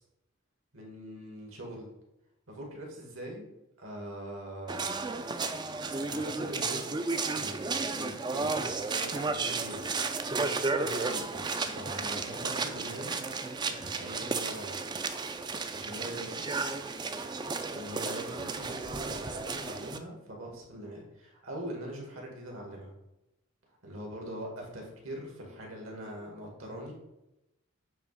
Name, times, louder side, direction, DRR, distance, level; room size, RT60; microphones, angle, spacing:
voice 1, 0.7-1.9 2.5-4.8 6.1-10.0 10.7-13.2 13.6-14.8 15.7-16.5 17.7-22.9 23.7-26.9, right 1 dB, 70° right, 0 dB, 2.0 m, -42 dB
sound 1, 4.7-20.0, right 4 dB, 20° right, 0.3 m, -33 dB
8.8 x 3.0 x 4.8 m, 0.90 s
head